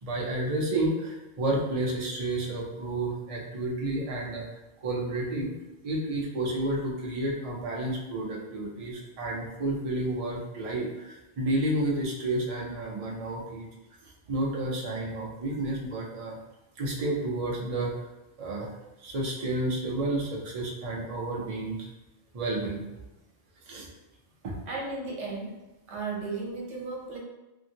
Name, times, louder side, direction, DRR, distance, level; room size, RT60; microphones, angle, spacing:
voice 1, 0.0-5.5 5.8-13.7 14.0-16.4 16.8-18.1 18.4-18.7 19.0-21.9 22.3-22.8 23.7-23.9 24.4-24.5, right 1 dB, 45° right, -2 dB, 0.5 m, -31 dB
voice 2, 24.7-25.6 25.9-27.2, right 3 dB, 90° right, -2 dB, 1.1 m, -35 dB
2.8 x 2.6 x 2.7 m, 0.99 s
omnidirectional pair, 1.2 m